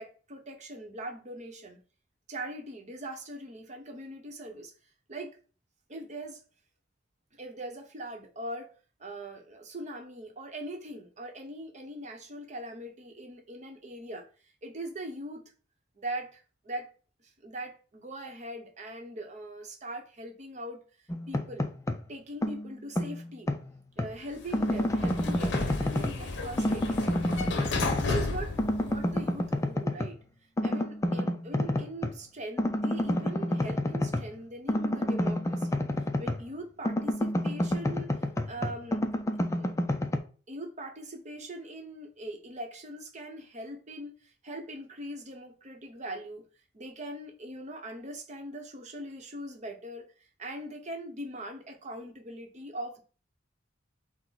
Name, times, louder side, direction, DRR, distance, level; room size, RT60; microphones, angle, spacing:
voice 1, 0.0-1.8 2.3-4.7 5.1-5.4 5.9-6.4 7.3-8.7 9.0-14.3 14.6-15.5 16.0-16.9 17.2-20.8 21.3-21.7 22.1-23.5 24.0-27.7 28.0-28.5 28.8-30.2 30.6-35.8 36.2-38.1 38.5-39.0 39.6-39.7 40.5-46.4 46.7-50.1 50.4-53.0, right 1 dB, 40° right, 0.8 m, -41 dB
sound 1, 21.1-22.1 22.4-24.2 24.5-26.3 26.6-28.3 28.6-30.2 30.6-32.2 32.6-36.6 36.8-40.2, left 1 dB, 15° left, 0.4 m, -29 dB
Sliding door, 24.3-29.5, left 3 dB, 65° left, 0.7 m, -34 dB
5.9 x 2.1 x 4.0 m
head